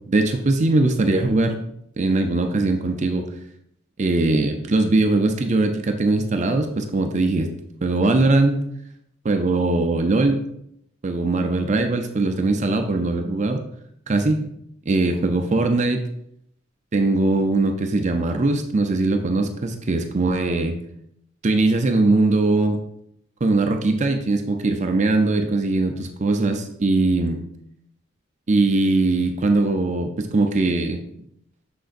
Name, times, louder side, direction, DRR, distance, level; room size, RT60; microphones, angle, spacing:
voice 1, 0.1-1.6 2.0-3.3 4.0-7.5 7.8-8.6 9.2-10.4 11.0-13.6 14.1-14.5 14.9-16.0 16.9-20.8 21.4-22.8 23.4-27.4 28.5-31.0, right 2 dB, 40° right, 5 dB, 0.5 m, -20 dB
6.7 x 6.3 x 2.5 m, 0.74 s
head